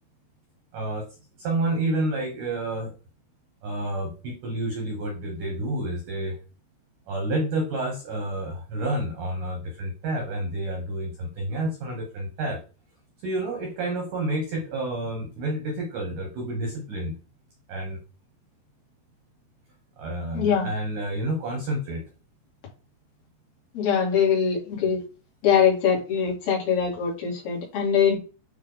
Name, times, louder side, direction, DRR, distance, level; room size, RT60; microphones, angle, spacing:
voice 1, 0.7-1.1 1.4-2.9 3.6-6.4 7.1-12.6 13.2-17.1 17.7-18.0 20.0-22.0, right 1 dB, 70° right, 1 dB, 2.0 m, -29 dB
voice 2, 20.3-20.7 23.7-25.0 25.4-28.2, left 7 dB, 55° left, -3 dB, 4.0 m, -22 dB
8.9 x 3.2 x 4.0 m, 0.35 s
omnidirectional pair, 5.4 m